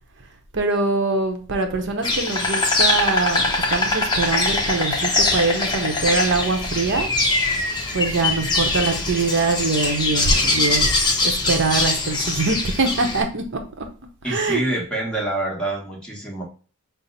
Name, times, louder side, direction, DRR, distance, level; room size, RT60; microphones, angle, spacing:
voice 1, 0.5-7.1 7.9-13.9 14.2-14.6, right 3 dB, 55° right, 5 dB, 0.7 m, -23 dB
Insect, 2.0-13.2, left 2 dB, 20° left, 0.7 m, -22 dB
voice 2, 14.2-16.4, right 2 dB, 5° left, -3 dB, 1.1 m, -27 dB
5.6 x 2.0 x 3.8 m, 0.38 s
head